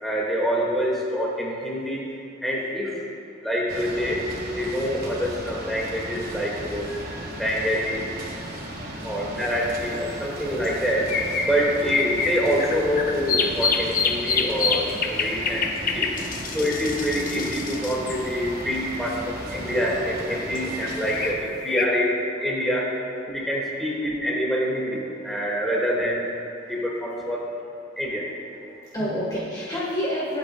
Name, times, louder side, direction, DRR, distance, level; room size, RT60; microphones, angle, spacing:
voice 1, 0.0-2.0 2.4-3.0 3.4-4.3 4.5-8.0 9.0-11.1 11.4-16.1 16.5-23.0 23.3-26.3 26.7-27.5 28.0-28.3, equal, ahead, -5 dB, 2.1 m, -26 dB
sound 1, 3.7-21.3, right 1 dB, 50° right, 1.7 m, -36 dB
sound 2, 9.6-9.7 10.6-19.0 20.3-21.9, left 5 dB, 45° left, 0.7 m, -27 dB
voice 2, 15.1-15.4 16.1-16.4 17.7-17.9 20.3-20.4 22.4-22.8 23.5-23.7 25.4-25.6 27.2-27.3 28.8-30.4, equal, 20° left, -7 dB, 1.6 m, -33 dB
24.0 x 8.4 x 2.4 m, 2.4 s
head